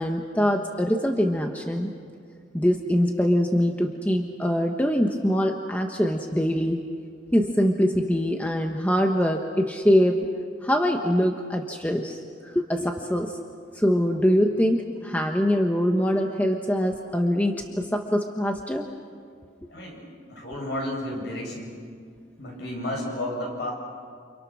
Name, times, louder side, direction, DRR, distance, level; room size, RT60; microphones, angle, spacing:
voice 1, 0.0-1.9 2.5-6.8 7.3-10.3 10.6-12.2 12.4-13.4 13.7-18.8, equal, 10° left, 3 dB, 1.1 m, -23 dB
voice 2, 19.7-20.0 20.3-21.7 22.4-23.7, left 1 dB, 55° left, -1 dB, 8.0 m, -32 dB
29.5 x 28.5 x 6.3 m, 2.2 s
head